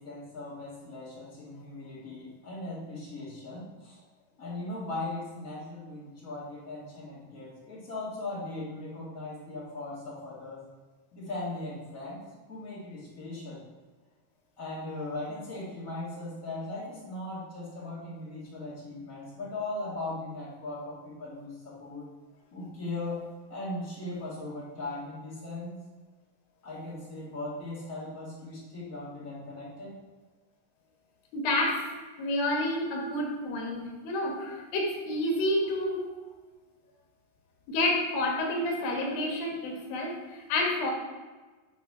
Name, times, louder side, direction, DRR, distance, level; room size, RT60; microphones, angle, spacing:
voice 1, 0.0-4.0 4.4-10.6 11.1-13.6 14.6-22.1 22.5-23.2 23.5-25.8 26.6-29.9, left 2 dB, 30° left, -6 dB, 2.0 m, -38 dB
voice 2, 31.3-31.8 32.2-36.1 37.7-40.9, left 1 dB, 90° left, 0 dB, 3.1 m, -29 dB
9.3 x 4.0 x 4.8 m, 1.3 s
omnidirectional pair, 4.0 m